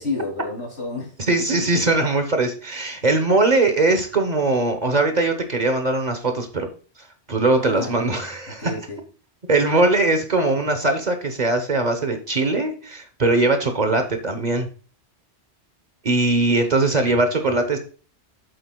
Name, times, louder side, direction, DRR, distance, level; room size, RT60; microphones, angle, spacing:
voice 1, 0.0-1.1 7.6-9.0, left 3 dB, 75° left, -1 dB, 3.1 m, -31 dB
voice 2, 1.3-6.7 7.3-8.6 9.5-14.7 16.0-17.8, right 2 dB, 40° right, 6 dB, 1.0 m, -20 dB
7.9 x 7.9 x 2.2 m, 0.39 s
omnidirectional pair, 1.1 m